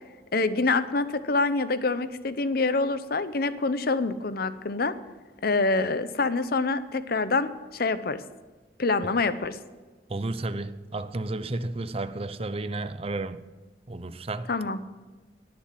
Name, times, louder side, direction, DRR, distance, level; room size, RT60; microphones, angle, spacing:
voice 1, 0.3-4.9 5.4-8.2 8.8-9.6 14.5-14.8, left 3 dB, 55° left, 0.8 m, -26 dB
voice 2, 10.1-13.4 13.9-14.5, right 2 dB, 35° right, 0.6 m, -32 dB
18.5 x 7.2 x 7.5 m
head